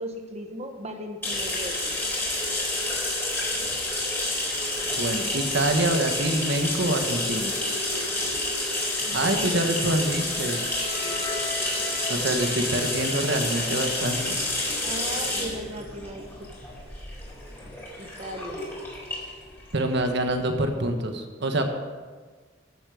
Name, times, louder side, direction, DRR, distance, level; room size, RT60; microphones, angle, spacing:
voice 1, 0.0-1.9 8.9-9.6 11.0-11.2 14.8-16.5 18.0-18.6, right 1 dB, 35° right, 5 dB, 1.2 m, -37 dB
sound 1, 1.2-20.7, left 2 dB, 10° left, 4.1 m, -29 dB
voice 2, 5.0-7.5 9.1-10.6 12.1-14.4 19.7-21.6, right 1 dB, 60° right, 5 dB, 1.5 m, -26 dB
Wind instrument woodwind instrument, 9.9-13.9, left 4 dB, 45° left, 4.8 m, -40 dB
14.0 x 8.6 x 6.5 m, 1.4 s
head